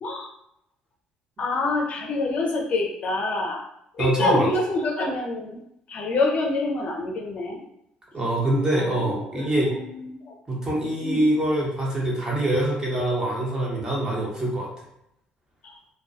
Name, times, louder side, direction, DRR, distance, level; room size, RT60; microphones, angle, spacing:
voice 1, 1.4-3.6 4.0-5.6 5.9-7.6 8.8-10.1 11.0-11.2 15.6-15.8, left 2 dB, 50° left, 0 dB, 0.5 m, -27 dB
voice 2, 4.0-4.5 8.1-9.7 10.5-14.7, right 1 dB, 25° right, -4 dB, 1.0 m, -24 dB
2.3 x 2.2 x 2.6 m, 0.78 s
supercardioid pair, 75°, 3 cm